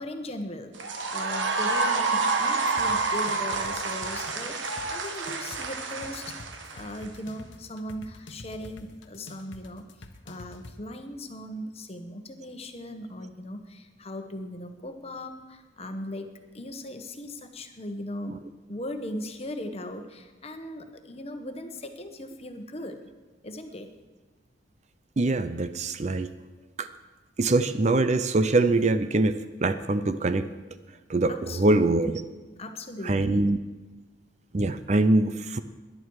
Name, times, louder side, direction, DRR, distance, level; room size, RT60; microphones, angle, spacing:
voice 1, 0.0-9.9 10.2-18.4 18.7-23.0 23.4-23.9 31.3-32.3 32.6-33.5, left 1 dB, 30° left, 7 dB, 1.1 m, -38 dB
sound 1, 0.7-7.1, right 3 dB, 80° right, 1.4 m, -28 dB
sound 2, 2.8-10.8, left 2 dB, 80° left, 1.1 m, -46 dB
voice 2, 25.2-26.3 26.8-26.9 27.4-30.5 31.1-32.2 33.1-33.6 34.5-35.6, right 2 dB, 35° right, 11 dB, 0.5 m, -23 dB
18.0 x 11.0 x 4.8 m, 1.2 s
head